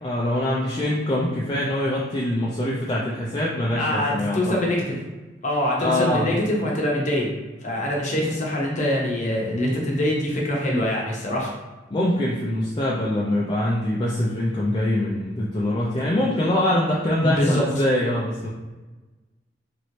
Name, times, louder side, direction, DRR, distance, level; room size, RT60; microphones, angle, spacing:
voice 1, 0.0-4.6 5.8-6.3 11.9-18.5, left 1 dB, 25° left, -5 dB, 0.4 m, -24 dB
voice 2, 3.8-5.0 5.4-7.3 7.6-11.5 17.2-17.6, left 1 dB, 40° left, -2 dB, 0.8 m, -24 dB
3.0 x 2.7 x 3.0 m, 1.2 s
head